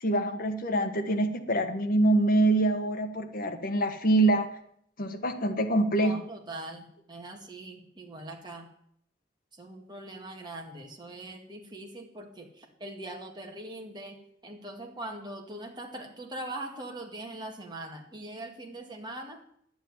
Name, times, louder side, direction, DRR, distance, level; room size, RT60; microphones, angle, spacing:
voice 1, 0.0-4.5 5.0-6.2, right 2 dB, 50° left, 6 dB, 1.5 m, -25 dB
voice 2, 6.0-8.7 9.5-19.4, right 1 dB, 25° right, 1 dB, 2.2 m, -42 dB
11.0 x 7.2 x 9.7 m, 0.68 s
head